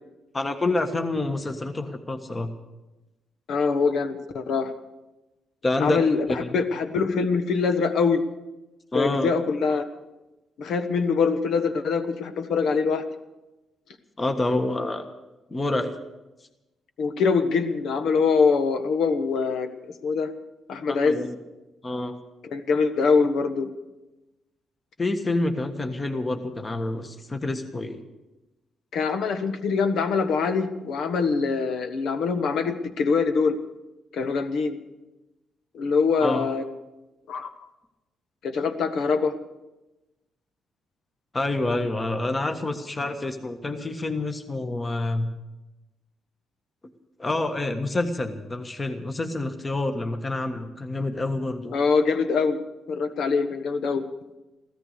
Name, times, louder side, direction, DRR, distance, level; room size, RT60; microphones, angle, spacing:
voice 1, 0.3-2.5 5.6-6.5 8.9-9.3 14.2-15.0 15.5-15.9 20.9-21.3 21.8-22.1 25.0-28.0 36.2-36.5 41.3-45.3 47.2-51.7, left 2 dB, 25° left, 6 dB, 1.5 m, -27 dB
voice 2, 3.5-4.7 5.8-8.2 8.9-9.8 10.6-13.0 17.0-19.7 20.0-20.3 20.7-21.3 22.4-23.7 28.9-33.6 34.1-34.8 35.7-36.6 37.3-37.5 38.4-39.3 51.7-52.6 52.9-54.0, left 5 dB, 70° left, 8 dB, 1.4 m, -23 dB
15.5 x 13.5 x 6.8 m, 1.0 s
cardioid pair, 90°, 0 cm